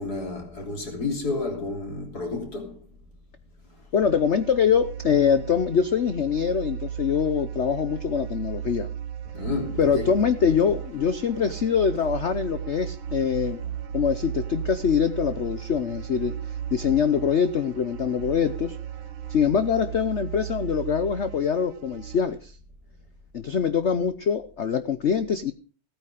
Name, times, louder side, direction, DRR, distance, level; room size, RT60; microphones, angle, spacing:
voice 1, 0.0-2.8 9.3-10.1, left 3 dB, 50° left, 3.8 m, -31 dB
voice 2, 3.9-8.9 9.8-13.6 13.9-16.4 16.7-18.8 19.3-22.5 23.3-25.5, left 7 dB, 90° left, 0.6 m, -24 dB
sound 1, 4.0-22.2, right 9 dB, 80° right, 1.7 m, -35 dB
16.5 x 9.2 x 4.9 m
omnidirectional pair, 2.2 m